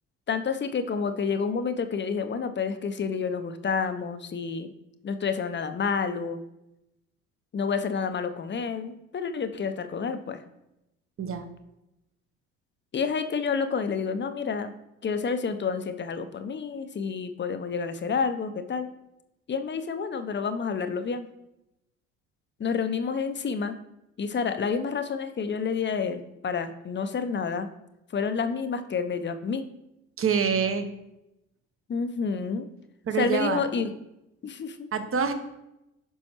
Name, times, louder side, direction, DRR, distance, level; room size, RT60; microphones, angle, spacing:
voice 1, 0.3-4.7 5.0-6.4 7.5-10.4 12.9-14.7 15.0-18.9 19.5-21.3 22.6-23.7 24.2-27.7 28.1-29.6 31.9-32.7 33.2-33.9 34.4-34.9, left 5 dB, 30° left, 9 dB, 0.8 m, -29 dB
voice 2, 30.2-30.9 33.1-33.6 34.9-35.3, right 6 dB, 35° right, 9 dB, 1.1 m, -26 dB
10.0 x 6.2 x 3.1 m, 0.89 s
figure-of-eight pair, 50°, 39 cm